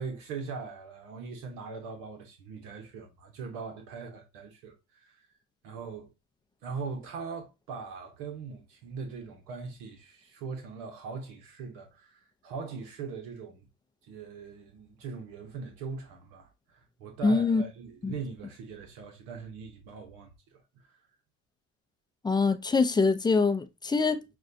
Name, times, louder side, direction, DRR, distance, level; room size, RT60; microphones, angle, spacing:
voice 1, 0.0-5.3 5.6-6.1 6.6-13.7 14.0-21.0, right 5 dB, 75° right, 1.0 m, -41 dB
voice 2, 17.2-17.6 18.0-18.1 22.2-24.2, left 4 dB, 15° left, 0.5 m, -24 dB
6.2 x 2.3 x 2.7 m
supercardioid pair, 90°, 34 cm